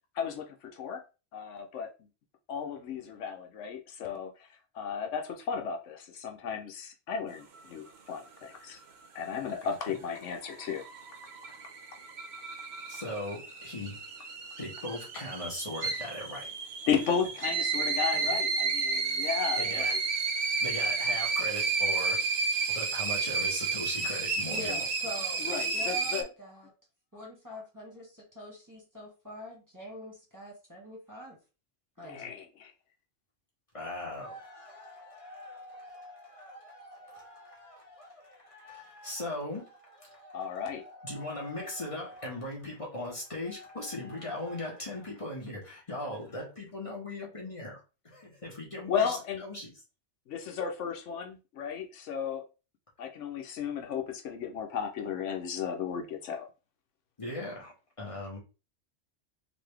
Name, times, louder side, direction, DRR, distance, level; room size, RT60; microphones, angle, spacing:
voice 1, 0.1-1.0 1.3-1.9 2.5-4.3 4.7-8.8 9.1-10.8 16.9-20.0 25.4-26.3 32.0-32.7 40.3-40.8 48.9-49.4 50.3-52.4 53.0-56.5, left 7 dB, 80° left, 1.0 m, -34 dB
voice 2, 9.6-9.9 11.4-11.6 12.9-14.0 14.6-16.5 18.1-18.4 18.9-19.0 19.6-20.0 20.6-22.2 22.7-24.9 33.7-49.7 57.2-58.4, left 1 dB, 30° left, 1.4 m, -39 dB
sound 1, 10.0-26.2, right 4 dB, 65° right, 1.0 m, -32 dB
voice 3, 24.5-26.7 27.1-31.4 32.0-32.3, left 1 dB, 15° right, 1.4 m, -44 dB
4.0 x 2.6 x 3.3 m
omnidirectional pair, 1.2 m